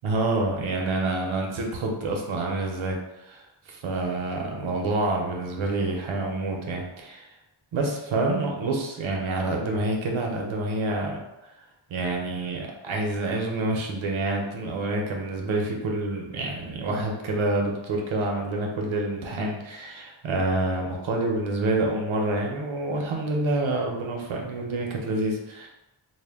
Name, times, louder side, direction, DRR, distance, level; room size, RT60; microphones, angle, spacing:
voice 1, 0.0-3.0 3.2-7.3 7.7-11.2 11.9-25.7, right 2 dB, 80° right, 0 dB, 0.6 m, -27 dB
2.1 x 2.1 x 3.3 m, 0.95 s
wide cardioid pair, 95°, 47 cm